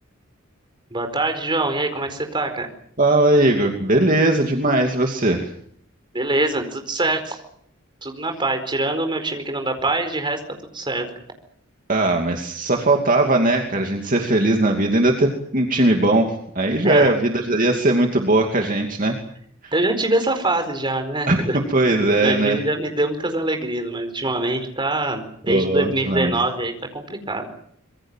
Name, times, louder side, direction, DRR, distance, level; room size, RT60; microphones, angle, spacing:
voice 1, 0.9-2.7 6.1-7.4 8.0-10.4 10.7-11.1 16.8-17.1 19.7-21.6 22.2-27.5, right 2 dB, 25° right, 6 dB, 4.6 m, -24 dB
voice 2, 3.0-5.5 11.9-19.2 19.6-19.7 21.3-21.4 21.7-22.6 25.5-26.3, right 2 dB, 40° right, 2 dB, 2.7 m, -19 dB
26.0 x 22.5 x 7.5 m, 0.64 s
head